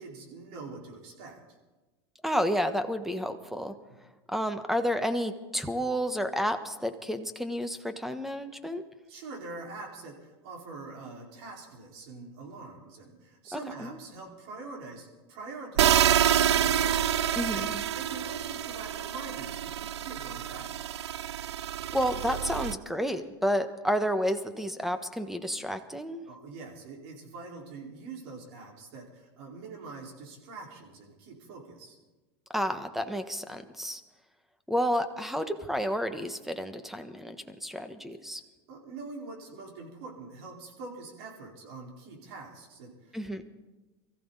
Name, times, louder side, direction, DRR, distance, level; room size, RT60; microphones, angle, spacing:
voice 1, 0.0-1.6 3.9-4.0 9.1-17.5 17.8-20.7 26.2-32.0 38.7-43.2, right 3 dB, 70° right, -1 dB, 4.7 m, -44 dB
voice 2, 2.2-3.7 4.3-8.8 13.5-14.0 17.4-17.8 21.9-26.2 32.5-34.0 34.7-38.4 43.1-43.4, equal, ahead, 9 dB, 1.2 m, -30 dB
sound 1, 15.8-22.7, right 10 dB, 90° right, 0.5 m, -27 dB
23.0 x 15.0 x 4.1 m, 1.2 s
hypercardioid pair, 105°, 14 cm